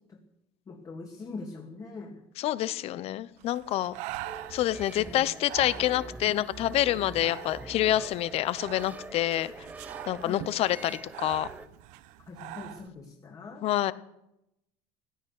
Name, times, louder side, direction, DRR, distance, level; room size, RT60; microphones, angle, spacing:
voice 1, 0.7-2.2 5.0-5.3 6.3-6.4 10.2-10.4 12.3-13.6, left 3 dB, 30° left, 1 dB, 2.5 m, -42 dB
voice 2, 2.4-3.9 4.5-9.5 10.1-11.5 13.6-13.9, left 13 dB, 50° left, 17 dB, 0.9 m, -27 dB
Breathing, 3.4-12.9, right 15 dB, 70° right, 0.9 m, -44 dB
sound 1, 4.2-11.7, right 2 dB, 10° right, 0.9 m, -44 dB
16.0 x 13.0 x 6.7 m, 0.86 s
cardioid pair, 125°, 13 cm